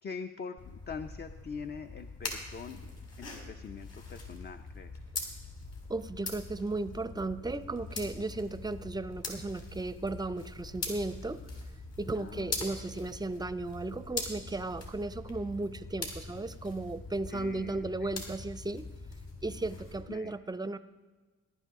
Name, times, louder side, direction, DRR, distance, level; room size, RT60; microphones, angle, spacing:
voice 1, 0.0-2.8 3.2-4.9 12.1-12.5 17.3-18.1 20.1-20.3, left 5 dB, 35° left, 7 dB, 0.6 m, -43 dB
sound 1, 0.6-20.0, left 3 dB, 60° left, 3.4 m, -42 dB
voice 2, 5.9-11.4 12.0-18.9 19.4-20.8, right 2 dB, 15° right, 14 dB, 0.5 m, -35 dB
18.0 x 11.0 x 3.7 m, 1.3 s
cardioid pair, 90°, 30 cm